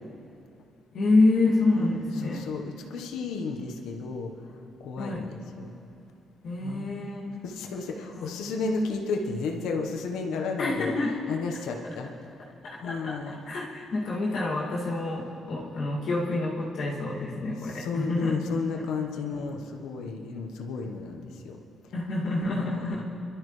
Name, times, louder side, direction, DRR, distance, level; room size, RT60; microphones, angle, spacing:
voice 1, 0.9-2.5 5.0-5.3 6.4-7.3 8.1-8.5 10.6-11.2 11.8-12.0 12.6-18.4 18.7-18.8 21.9-23.0, left 2 dB, 65° left, -5 dB, 2.5 m, -27 dB
voice 2, 1.7-4.3 4.8-5.7 6.6-6.9 7.4-10.9 11.3-12.1 12.8-13.4 17.6-21.6 22.5-23.0, left 4 dB, 85° left, 2 dB, 1.3 m, -33 dB
24.0 x 12.0 x 3.3 m, 2.7 s
cardioid pair, 90°, 0 cm